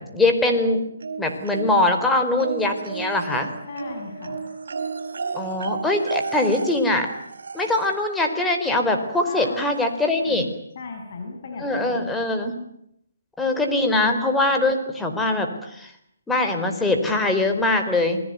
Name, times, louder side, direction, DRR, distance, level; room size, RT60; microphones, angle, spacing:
voice 1, 0.1-0.8 1.2-3.5 5.3-7.1 7.5-10.5 11.6-12.6 13.4-15.9 16.3-18.2, left 2 dB, 5° left, 4 dB, 4.3 m, -22 dB
sound 1, 1.0-2.0 2.4-8.1 9.3-9.4 9.8-9.9, right 4 dB, 70° right, 4.8 m, -33 dB
voice 2, 3.7-4.5 9.3-9.6 10.2-12.2, left 4 dB, 50° left, 3 dB, 6.6 m, -37 dB
28.0 x 21.5 x 9.5 m, 0.75 s
hypercardioid pair, 150°, 0 cm